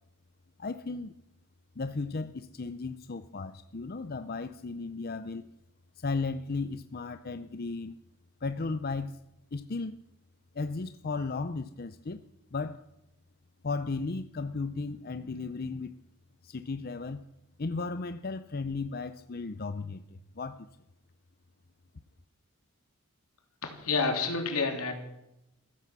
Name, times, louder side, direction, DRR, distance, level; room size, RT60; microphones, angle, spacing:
voice 1, 0.6-1.1 1.8-5.5 6.0-8.0 8.4-9.2 9.5-10.0 10.5-12.2 12.5-12.9 13.6-15.9 16.4-17.2 17.6-20.7, left 3 dB, 45° left, 11 dB, 0.6 m, -35 dB
voice 2, 23.6-24.9, left 4 dB, 80° left, 4 dB, 3.2 m, -29 dB
15.5 x 14.0 x 6.1 m, 0.86 s
head